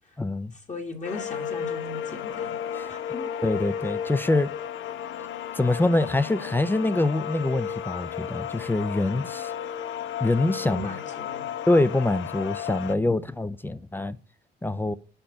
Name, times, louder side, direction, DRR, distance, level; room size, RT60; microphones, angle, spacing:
voice 1, 0.2-0.5 2.7-2.9 3.4-4.5 5.5-9.5 10.2-10.9 11.7-14.2 14.6-14.9, left 2 dB, 10° left, 0.4 m, -25 dB
voice 2, 0.7-2.6 2.9-3.3 10.7-11.5, left 3 dB, 35° left, 1.5 m, -37 dB
sound 1, 1.0-13.0, left 9 dB, 75° left, 0.5 m, -33 dB
5.0 x 4.5 x 5.6 m
cardioid pair, 90°, 20 cm